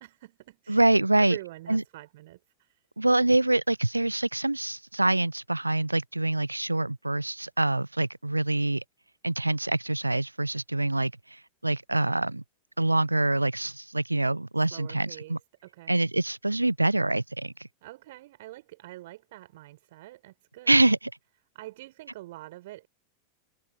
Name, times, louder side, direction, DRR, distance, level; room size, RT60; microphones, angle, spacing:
voice 1, 0.0-0.8 1.2-2.8 14.7-15.4 15.6-15.9 17.8-20.8 21.5-22.9, right 17 dB, 55° right, 5.6 m, -45 dB
voice 2, 0.7-1.4 1.7-1.8 3.0-8.8 9.2-12.4 12.8-15.4 15.9-17.5 20.7-21.0, right 2 dB, 85° right, 0.3 m, -25 dB
figure-of-eight pair, 90°, 0 cm